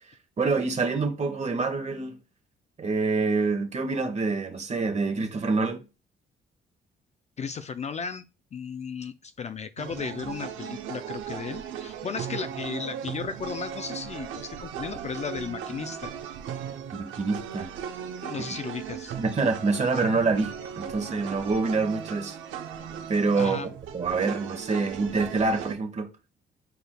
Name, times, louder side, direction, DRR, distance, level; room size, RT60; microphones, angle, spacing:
voice 1, 0.4-2.2 2.8-5.8 16.9-17.7 19.2-22.4 23.1-23.6 23.9-26.1, right 4 dB, 35° right, 1.0 m, -26 dB
voice 2, 7.4-8.2 8.5-16.1 18.2-19.1 23.4-23.7, left 6 dB, 35° left, 0.4 m, -35 dB
sound 1, 9.8-25.8, right 8 dB, 85° right, 0.6 m, -37 dB
5.0 x 4.5 x 2.2 m
cardioid pair, 90°, 20 cm